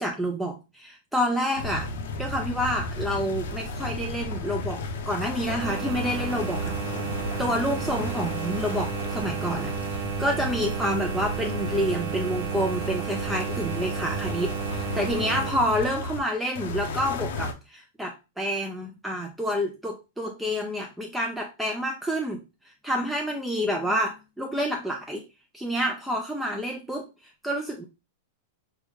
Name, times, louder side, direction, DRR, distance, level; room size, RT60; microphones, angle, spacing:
voice 1, 0.0-1.9 2.2-6.8 7.4-22.4 22.8-25.2 25.5-27.1 27.4-27.8, equal, 5° right, 2 dB, 0.3 m, -28 dB
sound 1, 1.6-16.2 16.6-17.5, left 2 dB, 70° left, 0.6 m, -33 dB
sound 2, 5.6-15.5, right 9 dB, 35° right, 0.7 m, -33 dB
4.7 x 2.1 x 3.2 m, 0.27 s
supercardioid pair, 165°, 0 cm